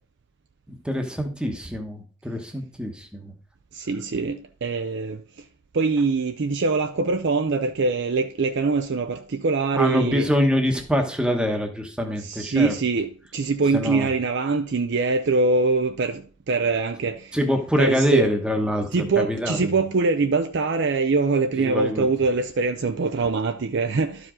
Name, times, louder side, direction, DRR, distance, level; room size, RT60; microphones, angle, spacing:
voice 1, 0.8-3.3 9.7-12.7 13.7-14.1 17.3-19.8 21.6-22.1, equal, 5° right, 1.0 m, -24 dB
voice 2, 3.7-5.2 5.7-10.3 12.2-17.4 17.8-18.3 18.9-24.3, right 4 dB, 55° right, 0.5 m, -23 dB
12.0 x 4.9 x 3.7 m
head